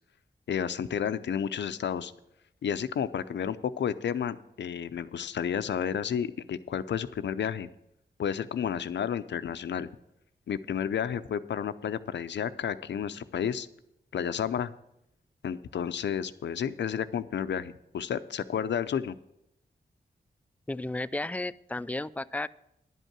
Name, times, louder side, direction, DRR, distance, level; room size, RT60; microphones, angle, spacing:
voice 1, 0.5-2.1 2.6-7.7 8.2-9.9 10.5-13.7 14.1-14.7 15.4-19.2, left 8 dB, 85° left, 13 dB, 0.5 m, -31 dB
voice 2, 20.7-22.5, left 2 dB, 10° left, 16 dB, 0.3 m, -33 dB
11.0 x 5.4 x 7.3 m, 0.81 s
cardioid pair, 65°, 18 cm